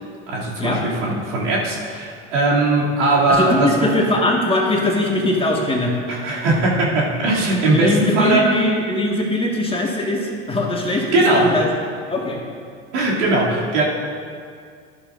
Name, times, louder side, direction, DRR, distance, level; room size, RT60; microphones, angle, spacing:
voice 1, 0.3-3.9 6.1-8.5 11.1-11.5 12.9-13.8, right 2 dB, 75° right, -5 dB, 2.8 m, -19 dB
voice 2, 3.3-5.9 7.7-11.7 12.1-12.4, left 1 dB, 15° left, -1 dB, 1.8 m, -21 dB
12.0 x 11.5 x 2.6 m, 2.2 s
hypercardioid pair, 80°, 36 cm